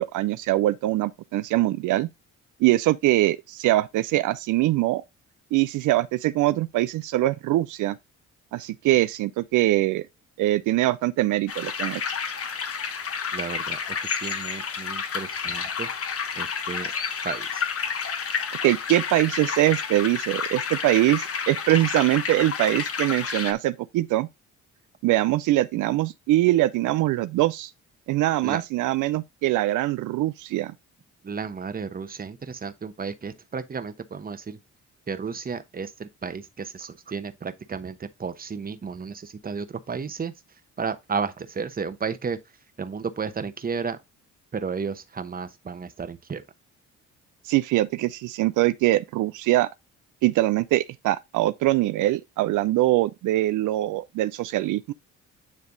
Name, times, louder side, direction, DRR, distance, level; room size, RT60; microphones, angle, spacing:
voice 1, 0.0-2.1 2.6-5.0 5.5-8.0 8.5-10.0 10.4-12.0 18.6-24.3 25.0-27.7 28.1-30.7 47.4-49.7 50.2-54.9, right 16 dB, 80° right, 0.5 m, -23 dB
sound 1, 11.5-23.5, left 6 dB, 50° left, 1.3 m, -30 dB
voice 2, 13.3-15.9 16.4-16.9 17.2-17.6 28.4-28.6 31.2-34.6 35.1-40.3 40.8-42.4 42.8-44.0 44.5-46.4, right 5 dB, 30° right, 1.0 m, -33 dB
9.6 x 3.5 x 3.9 m
cardioid pair, 90°, 30 cm